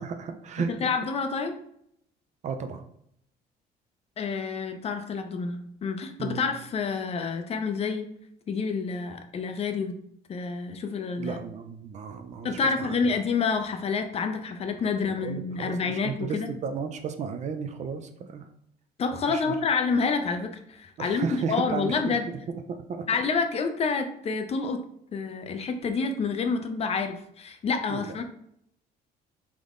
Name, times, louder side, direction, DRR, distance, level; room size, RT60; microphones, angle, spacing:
voice 1, 0.0-0.9 2.4-2.8 6.2-6.5 11.2-12.5 12.8-13.0 15.1-18.5 19.3-19.5 21.0-23.1 27.9-28.2, right 6 dB, 45° right, 7 dB, 0.4 m, -34 dB
voice 2, 0.7-1.6 4.2-8.1 8.5-9.9 10.3-11.4 12.4-16.5 19.0-22.3 23.1-24.8 25.1-28.2, left 5 dB, 35° left, 6 dB, 0.4 m, -28 dB
3.5 x 2.1 x 3.6 m, 0.71 s
cardioid pair, 110°, 17 cm